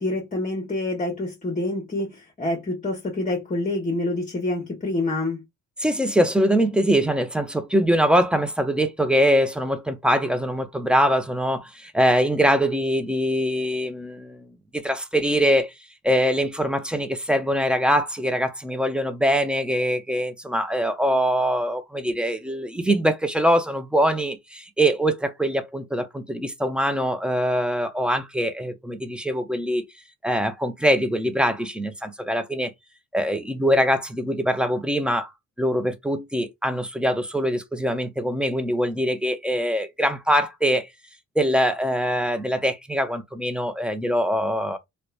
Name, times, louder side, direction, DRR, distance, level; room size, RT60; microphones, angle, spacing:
voice 1, 0.0-5.4, left 2 dB, 25° left, 0.9 m, -27 dB
voice 2, 5.8-15.7 16.0-29.9 30.2-32.7 33.1-35.3 35.6-40.9 41.4-44.8, equal, 5° right, 0.6 m, -23 dB
2.8 x 2.2 x 2.3 m
cardioid pair, 90°, 30 cm